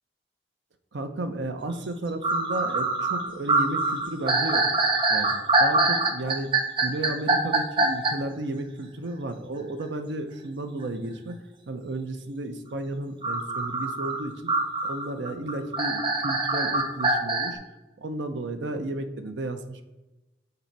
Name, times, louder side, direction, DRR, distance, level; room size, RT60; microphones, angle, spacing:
voice 1, 0.9-4.7 5.1-6.5 6.8-11.3 11.7-14.5 14.8-17.6 18.0-19.8, right 2 dB, 85° right, 8 dB, 0.6 m, -33 dB
sound 1, 1.8-1.9 2.2-8.1 13.2-17.5, right 2 dB, 25° right, 0.6 m, -24 dB
6.7 x 4.0 x 4.6 m, 1.1 s
head